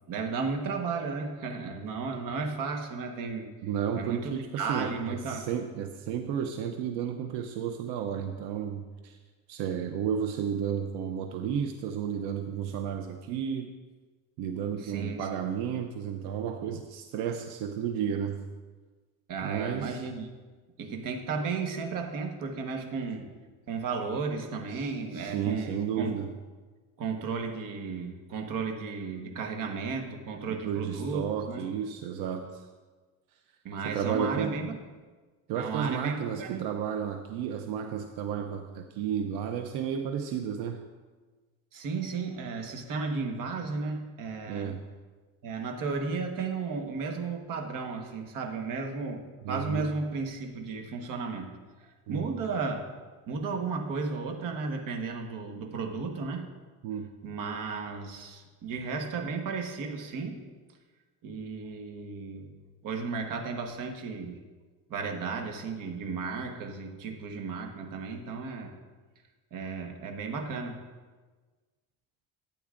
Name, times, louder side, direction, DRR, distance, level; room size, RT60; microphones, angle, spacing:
voice 1, 0.1-3.5 3.9-5.5 14.8-15.3 19.3-20.3 20.8-23.3 23.7-26.2 27.0-31.6 33.6-34.8 35.5-36.7 41.7-44.7 45.4-51.5 51.8-52.9 53.3-56.5 57.2-60.4 61.2-62.5 62.8-64.4 64.9-68.7 69.5-70.8, right 4 dB, 55° right, 3 dB, 1.3 m, -34 dB
voice 2, 3.6-9.2 9.5-13.7 14.4-18.4 19.4-20.0 24.7-26.3 30.5-32.7 33.8-34.5 35.5-40.8 44.5-44.8 49.4-49.9 52.1-52.3 56.8-57.1, right 8 dB, 85° right, 6 dB, 0.6 m, -32 dB
12.0 x 9.0 x 2.5 m, 1.4 s
cardioid pair, 140°, 38 cm